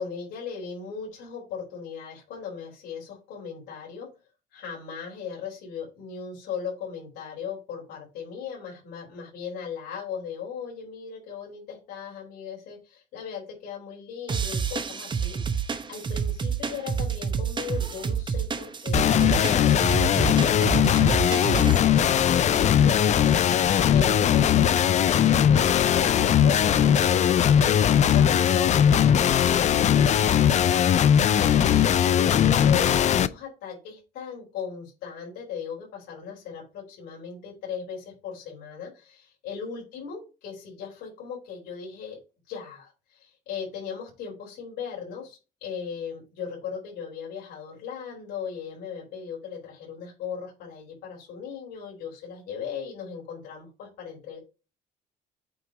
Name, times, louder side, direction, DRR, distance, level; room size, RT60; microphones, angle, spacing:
voice 1, 0.0-4.1 4.5-42.2 42.5-54.4, left 6 dB, 85° left, -4 dB, 3.9 m, -38 dB
sound 1, 14.3-21.8, right 6 dB, 25° right, 0.9 m, -29 dB
sound 2, 18.9-33.3, left 9 dB, 45° left, 0.5 m, -20 dB
8.6 x 2.9 x 5.0 m, 0.29 s
cardioid pair, 110°, 17 cm